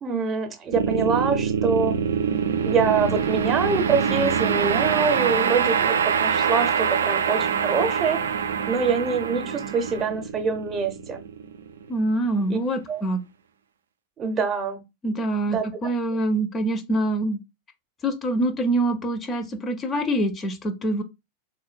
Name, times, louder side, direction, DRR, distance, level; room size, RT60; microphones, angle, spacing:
voice 1, 0.0-2.0 2.6-8.3 8.7-11.2 12.5-12.6 12.9-13.0 14.2-14.8 15.5-15.6, right 5 dB, 25° right, 0.6 m, -25 dB
sound 1, 0.7-11.9, right 7 dB, 65° right, 0.3 m, -24 dB
voice 2, 11.9-13.2 15.0-17.4 18.0-21.0, right 1 dB, 25° left, 0.4 m, -25 dB
3.6 x 2.1 x 2.4 m
figure-of-eight pair, 90°, 0 cm